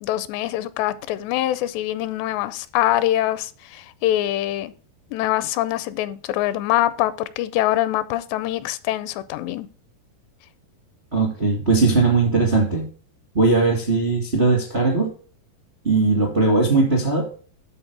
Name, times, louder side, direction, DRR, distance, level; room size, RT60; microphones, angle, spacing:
voice 1, 0.0-4.7 5.1-9.7, left 14 dB, 85° left, 2.7 m, -24 dB
voice 2, 11.1-12.8 13.3-15.1 15.8-17.2, right 3 dB, 45° right, 0.7 m, -19 dB
12.5 x 4.2 x 4.6 m
omnidirectional pair, 4.8 m